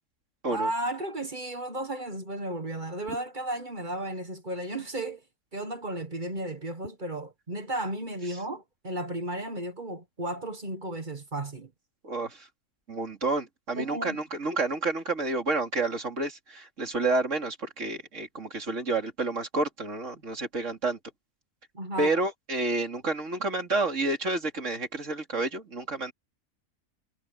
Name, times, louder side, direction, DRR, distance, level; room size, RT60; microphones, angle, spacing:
voice 1, 0.5-5.2 5.5-11.7 13.7-14.2 21.7-22.1, right 1 dB, 35° right, 1.6 m, -34 dB
voice 2, 12.0-12.5 12.9-21.0 22.0-26.1, right 3 dB, 55° right, 3.5 m, -29 dB
omnidirectional pair, 1.6 m